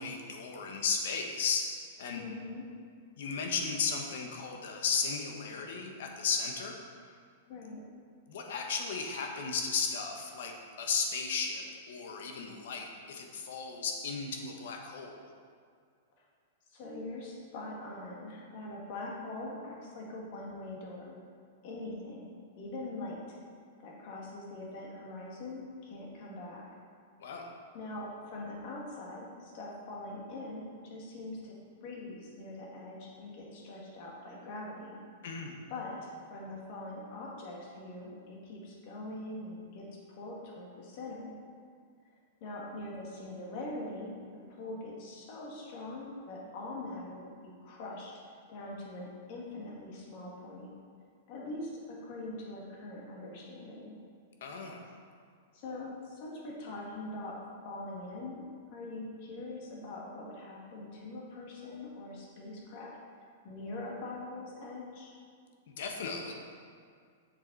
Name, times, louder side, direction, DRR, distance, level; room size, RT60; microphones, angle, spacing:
voice 1, 0.0-1.7 2.0-2.2 3.2-6.8 8.3-15.3 27.2-27.5 35.2-35.6 54.4-55.0 65.7-66.3, left 5 dB, 65° left, 2 dB, 1.2 m, -35 dB
voice 2, 2.2-2.7 7.5-7.8 16.7-21.2 21.6-23.4 23.8-26.6 27.7-31.6 31.8-35.0 35.7-41.4 42.4-48.1 48.5-50.7 51.3-54.0 55.5-57.4 57.6-58.4 58.7-62.9 63.4-65.1, left 2 dB, 45° left, -3 dB, 1.9 m, -43 dB
7.8 x 6.7 x 4.1 m, 2.1 s
supercardioid pair, 160°, 0 cm